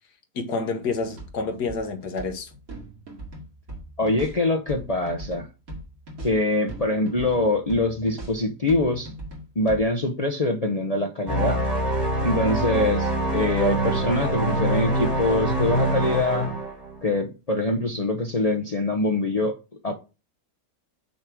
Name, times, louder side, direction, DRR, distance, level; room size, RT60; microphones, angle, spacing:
voice 1, 0.3-2.5, left 4 dB, 75° left, 1.8 m, -28 dB
sound 1, 0.9-9.8, right 1 dB, 60° right, 2.6 m, -40 dB
voice 2, 4.0-5.5 6.2-9.1 9.6-11.6 12.2-16.6 17.0-19.6 19.8-19.9, left 2 dB, 50° left, 0.4 m, -24 dB
sound 2, 11.3-17.1, right 1 dB, 25° right, 2.0 m, -25 dB
6.4 x 3.5 x 6.0 m
omnidirectional pair, 1.7 m